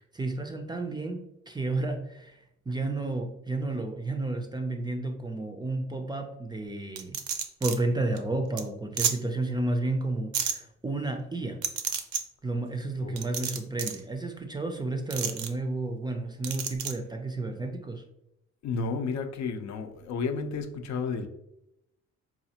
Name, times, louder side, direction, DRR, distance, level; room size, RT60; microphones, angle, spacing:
voice 1, 0.1-2.4 2.7-7.2 7.6-11.6 12.4-18.0, right 2 dB, 15° right, 4 dB, 0.4 m, -31 dB
sound 1, 7.0-7.8 8.2-8.3 8.6-8.7 9.0-9.1 10.3-10.5 11.6-12.2 13.2-14.0 15.1-15.5 16.4-16.9, right 8 dB, 75° right, 0.5 m, -30 dB
voice 2, 13.0-13.7 18.6-21.3, left 4 dB, 65° left, 6 dB, 0.5 m, -32 dB
4.1 x 2.4 x 2.8 m, 0.83 s
cardioid pair, 90°, 30 cm